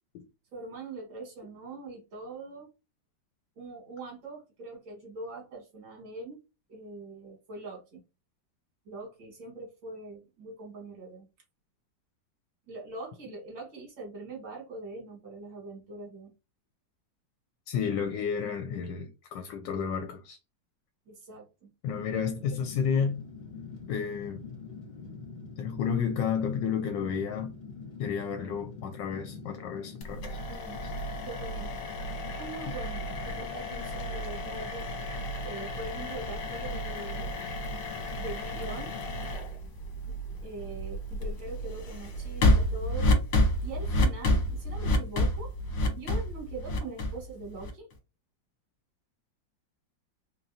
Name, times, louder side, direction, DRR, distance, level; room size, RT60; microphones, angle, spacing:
voice 1, 0.5-2.7 3.6-6.4 6.7-8.0 8.9-11.3 12.7-16.3 21.1-21.7 30.5-30.8 31.2-31.7 32.4-34.9 35.4-37.4 38.2-38.9 40.0-43.1 43.6-45.5 45.9-47.9, right 3 dB, 85° right, 2.4 m, -42 dB
voice 2, 17.7-20.4 21.8-23.2 23.9-24.4 25.6-27.5 28.0-30.4 32.7-32.8, left 7 dB, 80° left, 1.3 m, -31 dB
Fire, 21.9-39.3, left 4 dB, 50° left, 1.5 m, -45 dB
sound 1, 30.0-47.9, left 1 dB, 65° left, 1.6 m, -30 dB
4.1 x 3.0 x 2.7 m
omnidirectional pair, 2.0 m